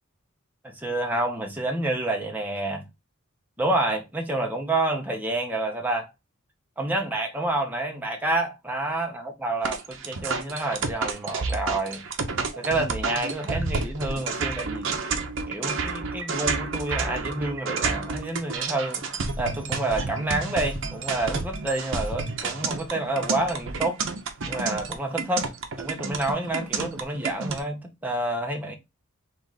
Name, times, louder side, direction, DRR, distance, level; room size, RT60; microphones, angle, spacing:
voice 1, 0.6-2.8 3.6-6.1 6.8-12.0 12.6-14.9 15.5-19.1 19.4-24.0 24.4-25.5 25.8-28.7, right 2 dB, 10° right, 0.8 m, -28 dB
sound 1, 9.6-27.6, right 4 dB, 60° right, 0.7 m, -30 dB
3.9 x 3.1 x 3.9 m
head